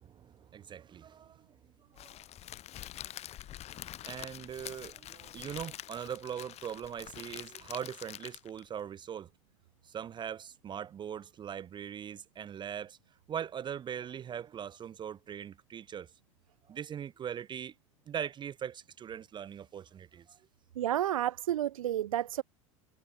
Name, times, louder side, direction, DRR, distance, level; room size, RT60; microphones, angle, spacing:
voice 1, 0.1-1.6 1.9-2.2 4.1-9.3 9.8-13.0 13.3-16.1 16.7-17.7 18.1-20.4, right 9 dB, 25° right, 0.5 m, -41 dB
Crackle, 2.0-8.7, left 13 dB, 40° left, 1.0 m, -46 dB
voice 2, 20.8-22.4, right 12 dB, 80° right, 0.4 m, -30 dB
hypercardioid pair, 80°, 17 cm